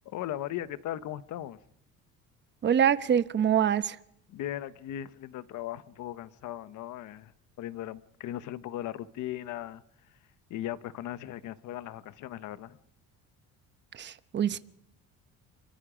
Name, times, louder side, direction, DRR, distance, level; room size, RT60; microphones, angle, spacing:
voice 1, 0.0-1.6 4.3-7.3 7.6-9.8 10.5-12.8, left 12 dB, 70° left, 1.1 m, -38 dB
voice 2, 2.6-4.0 13.9-14.6, right 9 dB, 35° right, 0.9 m, -25 dB
27.0 x 24.0 x 5.1 m
cardioid pair, 140°, 32 cm